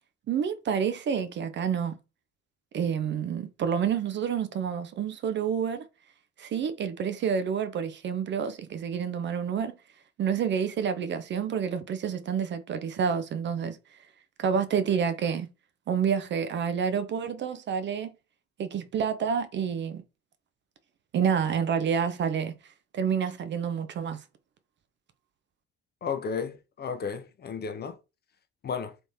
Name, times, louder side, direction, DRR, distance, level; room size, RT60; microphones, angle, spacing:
voice 1, 0.3-2.0 2.7-5.9 6.4-9.8 10.2-14.0 14.4-15.5 15.9-18.1 18.6-20.0 21.1-24.2, right 7 dB, 35° right, 0.5 m, -28 dB
voice 2, 26.0-28.0 28.6-28.9, left 6 dB, 30° left, 0.6 m, -33 dB
3.3 x 3.1 x 2.7 m
figure-of-eight pair, 45°, 33 cm